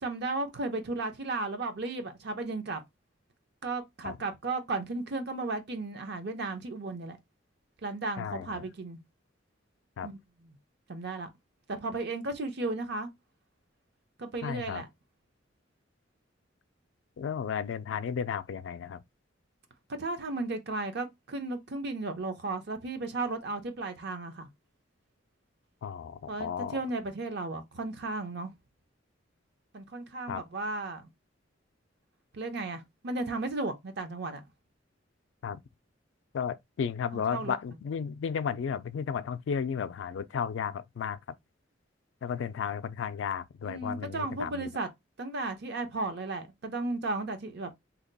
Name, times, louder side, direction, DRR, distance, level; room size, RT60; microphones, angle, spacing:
voice 1, 0.0-2.8 3.6-7.2 7.8-9.0 10.0-10.6 10.9-11.3 11.7-13.1 14.2-14.9 19.9-24.5 26.3-28.5 29.7-31.1 32.3-34.4 37.1-37.6 43.6-44.9 45.2-47.8, right 2 dB, 60° right, 0.7 m, -34 dB
voice 2, 8.2-8.6 10.0-10.1 14.4-14.8 17.2-19.0 25.8-26.8 30.3-30.4 35.4-35.6 36.3-41.2 42.2-44.7, left 7 dB, 75° left, 0.3 m, -33 dB
2.8 x 2.2 x 3.9 m
head